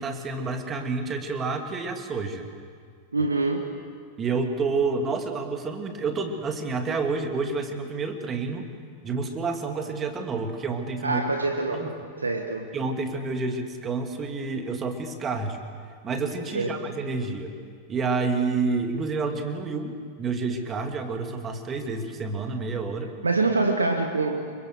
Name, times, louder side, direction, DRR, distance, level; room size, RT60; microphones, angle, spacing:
voice 1, 0.0-2.5 4.2-8.7 9.0-11.2 11.7-11.9 12.7-15.6 16.0-17.5 17.9-23.1, right 4 dB, 25° right, 5 dB, 2.7 m, -29 dB
voice 2, 3.1-3.7 11.0-12.7 16.5-16.7 23.2-24.5, right 3 dB, 75° right, 4 dB, 1.6 m, -25 dB
29.5 x 24.5 x 6.5 m, 2.1 s
figure-of-eight pair, 90°, 0 cm